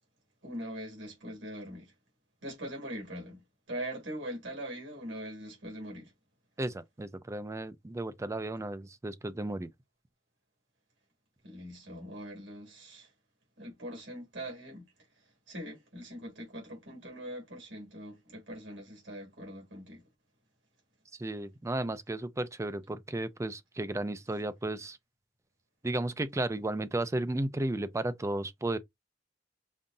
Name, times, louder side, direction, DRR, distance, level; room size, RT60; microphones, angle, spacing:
voice 1, 0.4-1.9 2.4-6.1 11.4-13.1 13.6-14.9 15.5-20.0, equal, 85° right, 2.5 m, -42 dB
voice 2, 6.6-9.7 21.2-25.0 25.8-28.8, right 1 dB, 15° right, 0.4 m, -34 dB
5.3 x 2.5 x 2.6 m
head